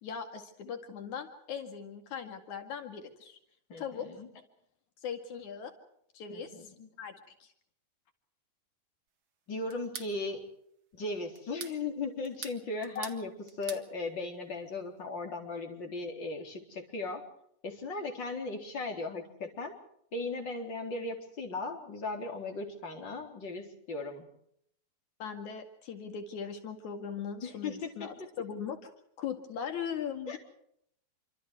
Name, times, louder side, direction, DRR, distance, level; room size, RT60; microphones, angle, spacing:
voice 1, 0.0-3.4 3.8-4.1 5.0-5.7 6.1-6.7 7.0-7.5 13.0-13.1 25.2-28.9 29.2-30.4, left 7 dB, 80° left, 6 dB, 3.5 m, -39 dB
voice 2, 3.7-4.3 6.3-6.9 9.5-10.5 10.9-13.3 13.6-17.2 17.6-19.7 20.1-24.2 27.4-28.1 30.3-30.4, left 3 dB, 40° left, 3 dB, 4.6 m, -37 dB
sound 1, 9.7-10.1 11.4-11.8 12.2-13.2 13.5-13.9, right 6 dB, 45° right, 2.3 m, -43 dB
27.5 x 25.0 x 4.7 m, 0.70 s
omnidirectional pair, 3.3 m